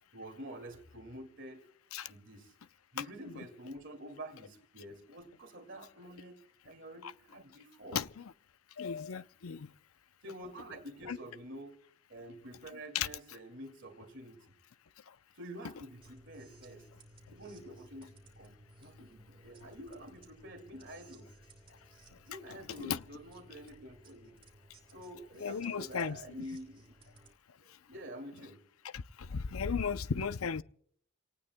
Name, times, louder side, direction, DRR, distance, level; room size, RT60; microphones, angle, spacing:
voice 1, 0.1-1.7 2.1-2.5 2.9-8.0 10.2-11.8 12.1-14.5 15.3-16.9 17.3-18.5 18.8-21.3 22.3-24.3 24.9-26.8 27.7-28.7, equal, 55° right, 2.3 m, -48 dB
voice 2, 7.9-8.2 8.8-9.7 11.1-11.2 12.9-13.1 22.8-23.0 25.4-26.2 29.3-30.6, left 6 dB, 80° left, 0.6 m, -35 dB
sound 1, 16.0-27.3, right 1 dB, 25° right, 3.2 m, -59 dB
28.5 x 18.5 x 2.2 m
head